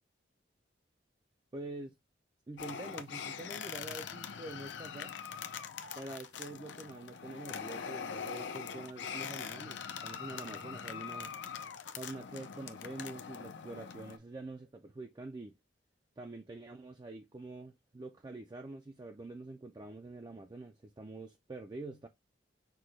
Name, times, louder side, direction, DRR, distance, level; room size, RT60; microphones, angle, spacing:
voice 1, 1.5-1.9 2.5-5.4 6.0-11.3 11.9-15.5 16.2-22.1, right 2 dB, 20° right, 0.4 m, -46 dB
sound 1, 2.6-14.2, left 7 dB, 70° left, 0.5 m, -43 dB
5.9 x 2.2 x 3.1 m
head